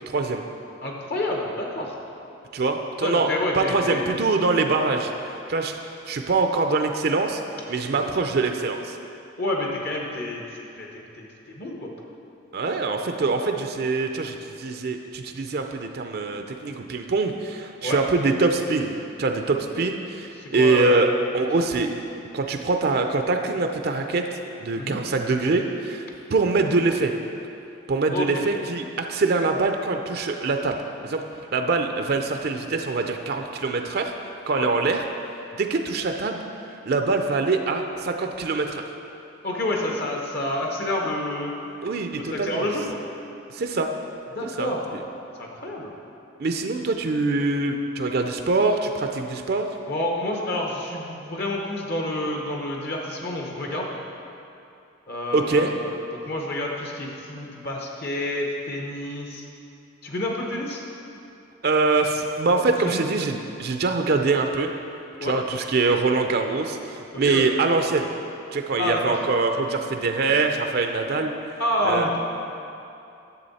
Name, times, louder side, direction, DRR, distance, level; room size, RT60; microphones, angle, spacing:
voice 1, 0.1-0.4 2.5-3.3 3.5-5.1 5.5-5.8 6.1-7.4 7.7-9.0 12.5-18.9 19.2-21.1 21.3-21.9 22.3-27.1 27.9-30.8 31.0-31.2 31.5-34.1 34.5-35.0 35.6-36.4 36.9-38.9 41.8-42.7 43.5-43.9 44.6-44.7 46.4-49.7 55.3-55.7 61.6-64.7 65.2-68.1 68.5-71.3 71.8-72.0, right 3 dB, 50° right, 5 dB, 0.5 m, -24 dB
voice 2, 0.8-1.9 3.0-4.2 9.4-11.9 17.8-18.0 20.4-21.2 24.8-25.0 28.1-28.4 34.5-34.7 39.4-41.5 42.2-43.0 44.3-44.9 45.4-45.9 49.9-54.0 55.1-59.4 60.0-60.8 62.8-63.1 65.2-65.4 67.3-67.5 68.8-69.2 71.6-72.2, left 1 dB, 55° left, 0 dB, 1.0 m, -29 dB
11.0 x 7.0 x 4.2 m, 2.7 s
head